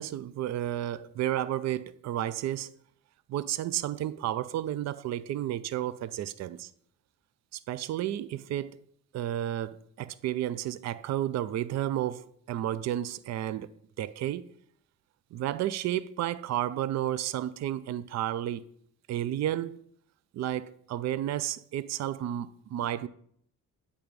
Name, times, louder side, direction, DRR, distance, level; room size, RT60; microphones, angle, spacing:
voice 1, 0.0-2.7 3.3-6.7 7.5-8.8 9.1-13.7 14.0-14.4 15.3-18.6 19.1-19.8 20.3-23.1, right 12 dB, 60° right, 0.5 m, -32 dB
8.7 x 3.5 x 5.2 m
cardioid pair, 90°, 30 cm